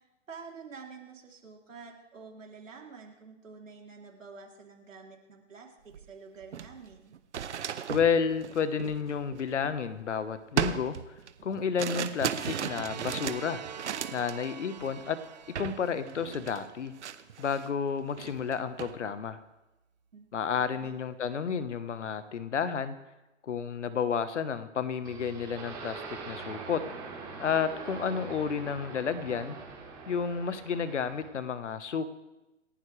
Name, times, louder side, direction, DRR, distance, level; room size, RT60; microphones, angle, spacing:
voice 1, 0.3-5.7 6.1-7.1 20.1-20.3 20.6-21.0, right 5 dB, 85° right, 0 dB, 3.6 m, -48 dB
sound 1, 5.9-6.0 6.4-10.0 10.6-14.5 14.8-15.1 15.6-15.8 16.1-17.7 18.1-19.0, right 8 dB, 65° right, 1.0 m, -36 dB
voice 2, 7.9-11.0 11.4-13.6 14.1-15.2 15.6-16.9 17.4-19.4 20.3-22.9 23.4-26.8 27.4-29.6 30.1-32.1, left 6 dB, 70° left, 12 dB, 1.4 m, -31 dB
sound 2, 12.3-17.1, right 8 dB, 35° right, 0.5 m, -45 dB
sound 3, 25.0-31.3, right 4 dB, 10° right, 2.8 m, -43 dB
28.0 x 11.0 x 3.4 m, 1.0 s
hypercardioid pair, 155°, 38 cm